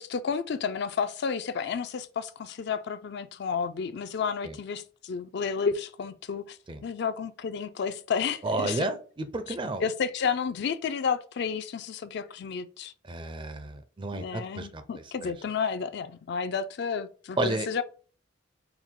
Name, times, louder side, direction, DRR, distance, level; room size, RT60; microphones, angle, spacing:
voice 1, 0.0-6.6 6.8-8.9 9.5-9.6 9.8-12.9 14.1-17.8, left 6 dB, 55° left, 0.4 m, -31 dB
voice 2, 8.4-9.8 13.1-15.3 17.4-17.7, right 2 dB, 25° right, 0.5 m, -32 dB
4.6 x 2.1 x 3.6 m
head